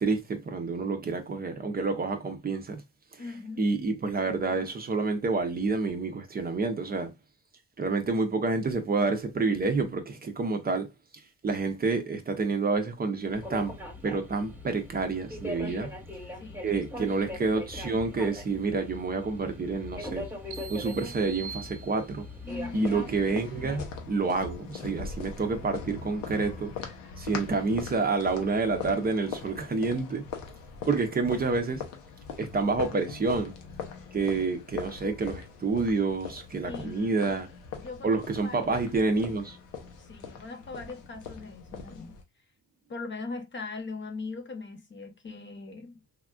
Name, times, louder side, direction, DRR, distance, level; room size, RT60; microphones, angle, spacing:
voice 1, 0.0-2.8 3.6-7.1 7.8-10.9 11.4-13.8 14.0-15.9 16.6-20.3 20.7-22.3 22.7-26.7 27.2-30.3 30.8-31.8 32.4-33.5 34.1-37.5 38.0-39.6, right 3 dB, 30° right, 0.6 m, -28 dB
voice 2, 3.2-3.6 15.6-15.9 16.4-16.7 22.4-23.0 36.6-37.2 37.8-38.8 40.0-42.2 42.9-46.0, left 3 dB, 40° left, 0.8 m, -40 dB
sound 1, 13.3-23.8, left 1 dB, 5° right, 1.0 m, -41 dB
sound 2, 20.5-22.4, right 7 dB, 85° right, 0.6 m, -44 dB
sound 3, 22.5-42.2, left 5 dB, 90° left, 0.7 m, -41 dB
3.4 x 2.4 x 2.3 m
cardioid pair, 90°, 30 cm